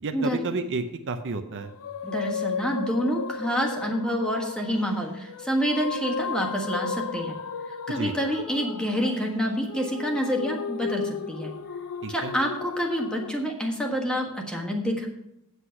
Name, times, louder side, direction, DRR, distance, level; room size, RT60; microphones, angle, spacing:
voice 1, 0.0-1.7 7.9-8.1 12.0-12.3, right 3 dB, 55° right, 7 dB, 0.7 m, -31 dB
sound 1, 1.6-13.3, left 5 dB, 75° left, 0.6 m, -35 dB
voice 2, 2.0-7.3 7.9-11.5 12.1-15.1, equal, 5° left, 1 dB, 1.4 m, -27 dB
8.1 x 8.0 x 5.7 m, 0.85 s
head